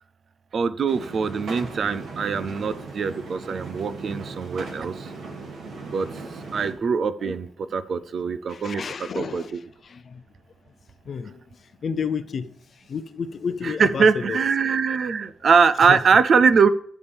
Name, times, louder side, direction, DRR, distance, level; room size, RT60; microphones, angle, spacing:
voice 1, 0.5-5.1 5.9-6.1 6.5-8.8 9.2-9.6 13.6-16.7, right 5 dB, 45° right, 0.5 m, -22 dB
sound 1, 0.9-6.7, right 3 dB, 60° right, 2.3 m, -37 dB
voice 2, 8.5-10.2 11.0-14.4 15.9-16.0, left 6 dB, 45° left, 0.6 m, -31 dB
14.0 x 7.2 x 3.5 m
wide cardioid pair, 175°, 0 cm